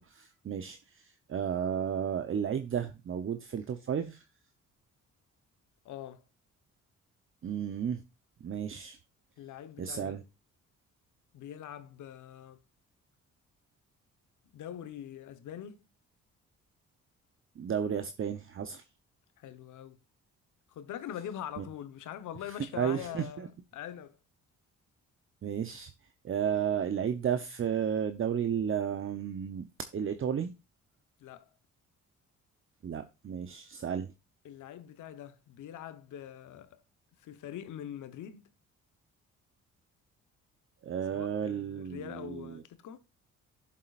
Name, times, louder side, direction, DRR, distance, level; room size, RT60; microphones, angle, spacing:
voice 1, 0.0-4.2 7.4-8.0 8.4-9.0 9.8-10.2 17.6-18.8 21.6-21.7 22.5-23.5 25.4-25.9 26.2-29.7 29.9-30.5 32.8-34.1 40.8-42.6, right 8 dB, 45° right, 0.9 m, -33 dB
voice 2, 5.8-6.2 9.4-10.2 11.3-12.6 14.5-15.9 19.4-20.0 20.7-24.2 31.2-31.5 34.4-36.8 37.2-38.5 41.1-43.0, left 10 dB, 80° left, 1.2 m, -43 dB
11.0 x 7.4 x 2.5 m
cardioid pair, 90°, 30 cm